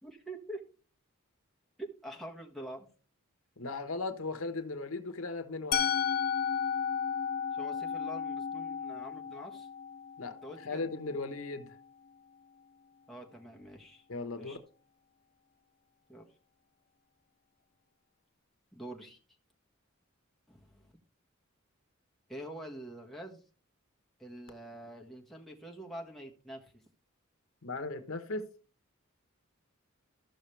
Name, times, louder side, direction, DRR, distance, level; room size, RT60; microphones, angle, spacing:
voice 1, 0.0-0.6 1.8-2.9 7.5-9.7 10.4-10.8 13.1-14.0 14.4-14.6 16.1-16.3 18.7-19.2 20.5-20.9 22.3-23.4 24.2-26.8, right 1 dB, ahead, 1.5 m, -46 dB
voice 2, 3.6-5.9 10.2-10.3 10.6-11.8 14.1-14.6 27.6-28.5, left 3 dB, 80° left, 1.1 m, -37 dB
Musical instrument, 5.7-11.6, left 7 dB, 45° left, 0.7 m, -34 dB
14.0 x 6.2 x 3.3 m
head